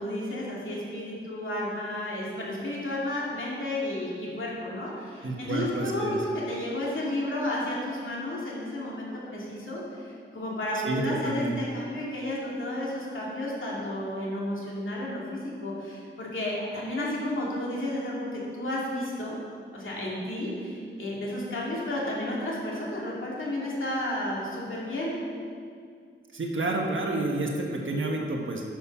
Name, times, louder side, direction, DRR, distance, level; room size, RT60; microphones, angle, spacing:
voice 1, 0.0-19.4 19.7-25.1, left 1 dB, 75° left, -5 dB, 2.4 m, -32 dB
voice 2, 5.2-6.2 10.7-11.5 26.3-28.6, right 2 dB, 70° right, 0 dB, 1.4 m, -29 dB
9.3 x 6.2 x 6.1 m, 2.2 s
wide cardioid pair, 115°, 21 cm